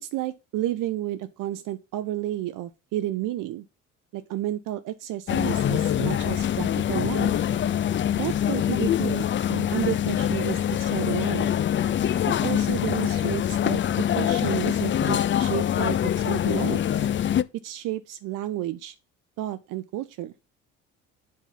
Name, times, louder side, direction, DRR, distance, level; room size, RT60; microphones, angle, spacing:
voice 1, 0.0-3.6 4.1-7.4 8.1-11.6 12.3-16.8 17.5-19.0 19.4-20.3, right 14 dB, 65° right, 0.7 m, -31 dB
sound 1, 5.3-17.4, left 10 dB, 35° left, 0.5 m, -24 dB
7.5 x 3.7 x 5.6 m
supercardioid pair, 70°, 35 cm